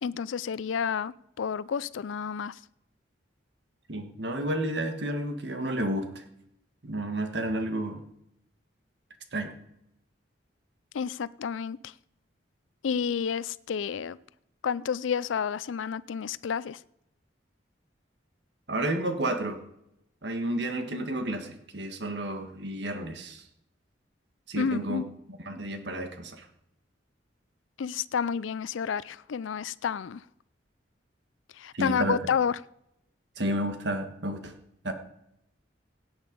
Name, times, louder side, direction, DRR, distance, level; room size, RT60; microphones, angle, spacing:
voice 1, 0.0-2.6 10.9-11.9 12.8-14.2 14.6-16.8 24.6-25.1 27.8-30.2 31.5-32.6, left 7 dB, 90° left, 0.4 m, -30 dB
voice 2, 3.9-6.2 6.8-8.0 9.3-9.5 18.7-19.6 20.2-23.4 24.5-25.0 25.4-26.4 31.7-32.2 33.4-34.5 34.8-34.9, right 1 dB, 65° right, 1.6 m, -31 dB
17.0 x 8.8 x 5.3 m
head